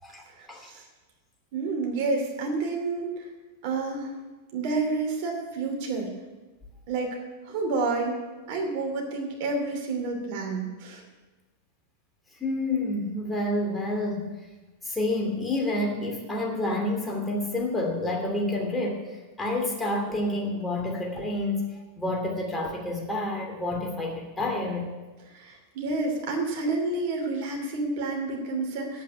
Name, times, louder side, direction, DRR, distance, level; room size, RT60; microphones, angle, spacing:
voice 1, 0.0-0.7 7.5-7.6 12.4-14.4 14.8-24.9, left 1 dB, 10° left, 0 dB, 2.8 m, -29 dB
voice 2, 1.5-3.3 3.6-4.1 4.5-6.1 6.9-7.2 7.4-8.2 8.5-11.0 25.3-29.0, right 3 dB, 45° right, 2 dB, 3.0 m, -29 dB
9.1 x 8.7 x 9.6 m, 1.2 s
figure-of-eight pair, 90°, 0 cm